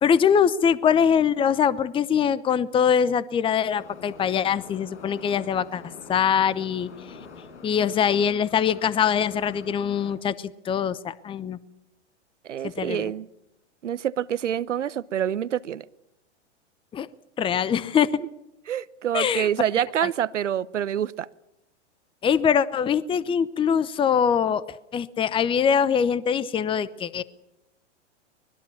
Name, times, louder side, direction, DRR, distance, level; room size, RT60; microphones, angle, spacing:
voice 1, 0.0-5.8 6.1-6.9 7.6-11.6 12.6-13.1 16.9-17.1 17.4-18.2 19.1-19.5 20.0-20.1 22.2-24.6 24.9-27.2, left 7 dB, 15° left, 0.8 m, -23 dB
Subway metro underground, 3.8-10.2, left 4 dB, 75° left, 5.9 m, -45 dB
voice 2, 12.4-13.3 13.8-15.8 18.7-21.3, right 10 dB, 90° right, 0.9 m, -27 dB
25.0 x 21.0 x 7.1 m
hypercardioid pair, 120°, 35 cm